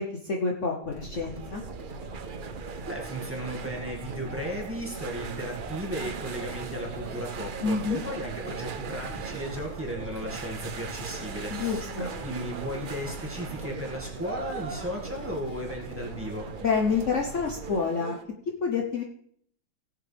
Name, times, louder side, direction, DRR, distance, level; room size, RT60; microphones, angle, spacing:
voice 1, 0.0-1.6 7.6-8.0 11.5-12.1 16.6-18.1 18.6-19.0, left 5 dB, 50° left, 0 dB, 1.2 m, -28 dB
sound 1, 0.8-17.7, right 2 dB, 35° right, 2.7 m, -42 dB
sound 2, 1.1-18.2, right 6 dB, 70° right, 0.4 m, -40 dB
voice 2, 2.9-16.5, equal, 5° right, -1 dB, 2.0 m, -35 dB
17.5 x 7.6 x 3.4 m, 0.65 s
omnidirectional pair, 1.8 m